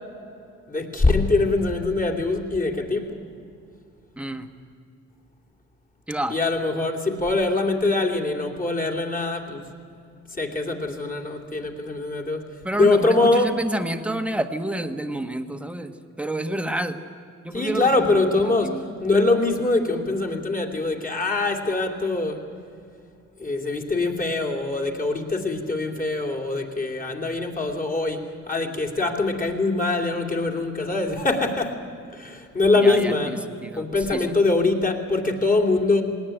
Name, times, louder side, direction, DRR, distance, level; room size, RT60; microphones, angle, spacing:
voice 1, 0.7-3.2 6.3-9.6 10.3-12.4 12.7-13.5 17.5-22.4 23.4-31.8 32.1-33.3 33.8-36.0, left 3 dB, 25° left, 1 dB, 2.8 m, -23 dB
voice 2, 4.2-4.5 6.1-6.4 12.6-17.0 17.4-18.8 32.8-33.8 34.1-34.4, right 1 dB, 5° right, 7 dB, 1.3 m, -29 dB
20.0 x 18.5 x 9.0 m, 2.5 s
cardioid pair, 90°, 30 cm